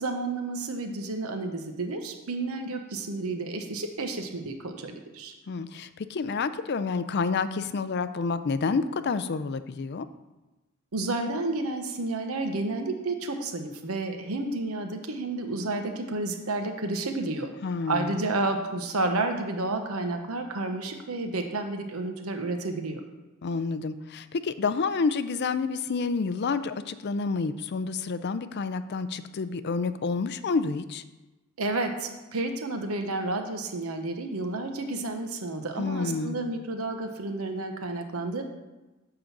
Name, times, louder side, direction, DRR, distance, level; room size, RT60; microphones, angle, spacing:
voice 1, 0.0-5.3 10.9-17.5 17.9-23.1 31.6-38.4, right 2 dB, 80° right, 5 dB, 1.0 m, -31 dB
voice 2, 5.5-10.1 17.6-18.2 23.4-31.0 35.8-36.4, left 4 dB, 50° left, 12 dB, 0.4 m, -29 dB
9.9 x 3.8 x 7.2 m, 1.1 s
head